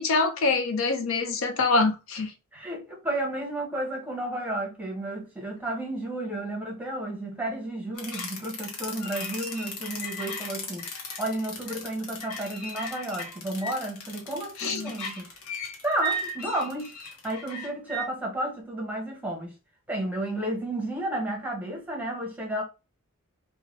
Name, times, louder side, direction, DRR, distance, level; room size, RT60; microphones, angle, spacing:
voice 1, 0.0-2.3 14.6-14.9, left 3 dB, 60° left, 0.5 m, -25 dB
voice 2, 2.5-10.9 11.2-15.3 15.8-17.0 17.2-19.5 19.9-22.6, right 1 dB, 5° right, 0.9 m, -32 dB
sound 1, 8.0-18.1, equal, 80° left, 0.9 m, -36 dB
2.7 x 2.2 x 3.0 m
head